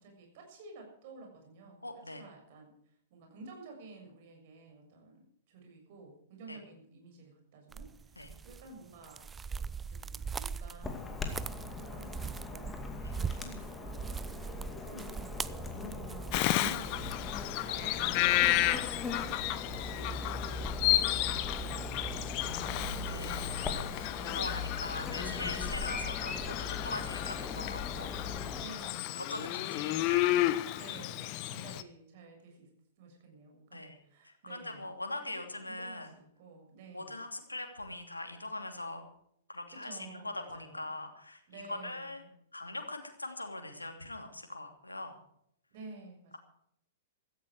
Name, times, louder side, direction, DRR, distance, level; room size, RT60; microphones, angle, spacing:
voice 1, 0.0-2.8 3.1-12.7 13.3-14.3 14.6-18.0 18.3-20.8 21.4-22.3 24.1-24.5 25.6-26.1 28.6-29.3 30.7-32.7 33.0-37.3 39.7-40.9 41.5-42.3 45.7-46.4, right 3 dB, 45° right, 2 dB, 7.1 m, -52 dB
voice 2, 1.8-2.2 6.5-6.6 8.2-8.3 11.2-11.3 13.0-13.2 17.7-18.7 19.8-19.9 22.4-28.6 29.1-30.3 33.7-34.0 34.2-36.2 36.9-39.0 39.5-42.2 42.5-45.2, left 2 dB, 85° left, 5 dB, 2.8 m, -42 dB
sound 1, 7.7-17.1, right 5 dB, 15° right, 0.5 m, -41 dB
Chirp tweet / Buzz, 10.8-28.7, left 3 dB, 15° left, 2.4 m, -40 dB
Bird vocalization bird call bird song, 16.3-31.8, left 15 dB, 40° left, 1.0 m, -32 dB
16.5 x 14.0 x 4.8 m, 0.70 s
figure-of-eight pair, 105°, 0 cm